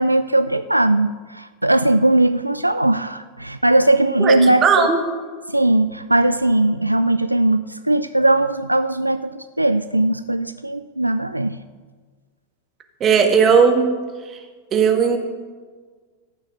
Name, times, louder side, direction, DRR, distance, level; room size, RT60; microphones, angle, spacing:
voice 1, 0.0-4.9 5.5-11.6, right 1 dB, 85° right, 12 dB, 0.3 m, -19 dB
voice 2, 4.2-5.0 13.0-13.9 14.3-14.4 14.7-15.2, right 6 dB, 25° right, 4 dB, 1.7 m, -16 dB
13.5 x 6.4 x 6.7 m, 1.5 s
figure-of-eight pair, 90°, 0 cm